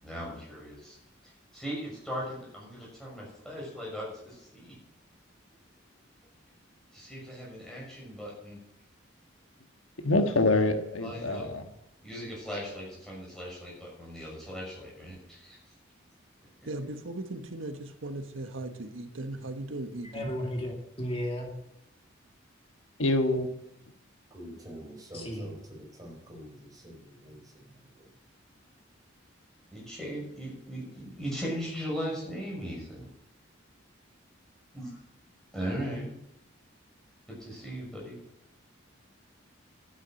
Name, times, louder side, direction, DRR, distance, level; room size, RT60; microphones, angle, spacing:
voice 1, 0.0-1.0 1.2-4.7 6.9-8.6 10.1-10.3 11.0-11.4 12.0-15.6 29.7-33.1 34.7-35.0 35.5-36.1 37.3-38.2, equal, ahead, -4 dB, 6.4 m, -38 dB
voice 2, 10.0-11.7 23.0-23.5, left 2 dB, 85° left, 6 dB, 1.5 m, -25 dB
voice 3, 16.6-20.3, right 2 dB, 85° right, 7 dB, 1.3 m, -38 dB
voice 4, 20.1-21.5 25.1-25.5, equal, 30° left, 0 dB, 2.6 m, -34 dB
voice 5, 24.3-28.1, equal, 20° right, 0 dB, 4.5 m, -47 dB
12.0 x 9.9 x 7.6 m, 0.83 s
head